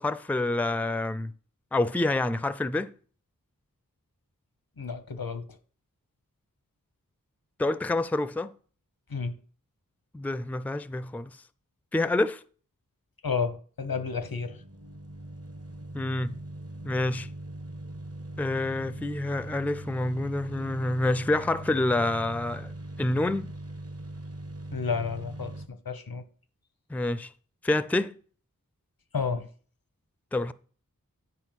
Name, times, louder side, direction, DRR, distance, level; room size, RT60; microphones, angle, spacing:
voice 1, 0.0-1.3 1.7-2.9 7.6-8.5 10.1-11.3 11.9-12.4 15.9-16.4 16.8-17.3 18.4-22.7 23.0-23.5 26.9-27.3 27.6-28.1 30.3-30.5, left 2 dB, 5° left, 0.4 m, -27 dB
voice 2, 4.8-5.6 9.1-9.4 13.2-14.6 24.7-26.2 29.1-29.5, left 5 dB, 85° left, 1.0 m, -31 dB
sound 1, 13.8-25.7, right 1 dB, 45° right, 0.9 m, -41 dB
9.8 x 4.6 x 5.8 m
wide cardioid pair, 40°, 34 cm